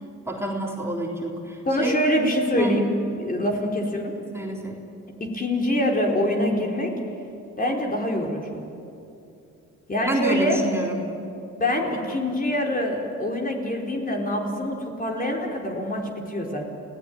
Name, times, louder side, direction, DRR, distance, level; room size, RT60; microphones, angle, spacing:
voice 1, 0.3-2.0 2.6-2.8 4.3-4.8 10.0-11.0 11.8-12.2, right 2 dB, 10° right, -1 dB, 3.9 m, -28 dB
voice 2, 1.7-4.1 5.2-6.9 7.6-8.6 9.9-10.6 11.6-16.7, left 1 dB, 30° left, 0 dB, 4.5 m, -25 dB
28.5 x 17.5 x 9.5 m, 2.7 s
cardioid pair, 85°, 31 cm